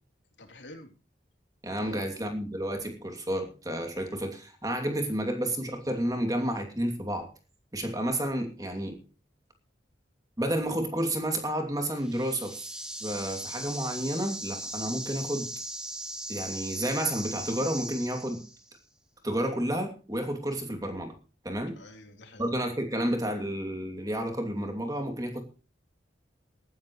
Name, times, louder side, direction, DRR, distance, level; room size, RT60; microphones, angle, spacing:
voice 1, 0.4-0.9 1.7-2.1 21.7-22.5, left 1 dB, 85° left, 3 dB, 3.6 m, -47 dB
voice 2, 1.6-7.3 7.7-9.0 10.4-12.6 13.0-15.5 16.3-18.4 19.2-21.1 21.4-21.8 22.4-25.4, right 1 dB, 20° right, 4 dB, 2.7 m, -31 dB
sound 1, 12.0-18.7, right 1 dB, 5° right, 2.0 m, -39 dB
18.0 x 14.0 x 3.2 m, 0.35 s
head